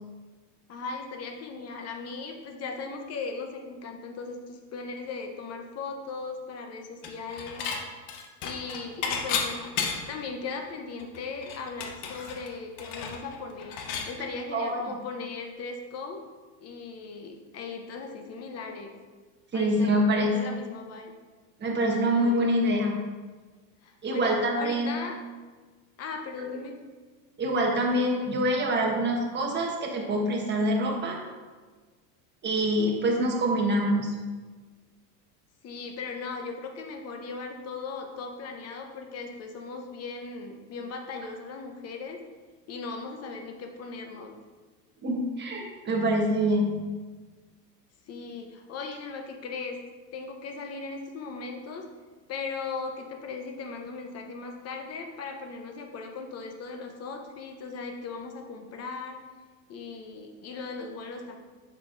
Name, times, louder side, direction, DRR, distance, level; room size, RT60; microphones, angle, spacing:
voice 1, 0.7-7.7 8.0-8.1 8.4-16.2 16.6-18.9 19.5-21.1 22.1-22.5 23.8-25.2 26.0-26.8 35.6-42.2 42.7-44.4 48.1-49.8 50.1-51.8 52.3-59.2 59.7-61.4, left 4 dB, 30° left, 4 dB, 0.8 m, -38 dB
Dishes pots and pans / Chink clink, 7.0-7.8 8.1-10.2 10.6-10.7 11.0-14.1, left 6 dB, 55° left, 1.1 m, -33 dB
voice 2, 19.5-20.3 21.6-22.9 24.0-25.0 26.4-26.5 27.4-31.2 32.4-34.1 45.0-46.8, right 1 dB, 20° right, 0 dB, 1.3 m, -25 dB
6.9 x 6.2 x 2.6 m, 1.4 s
supercardioid pair, 120°, 48 cm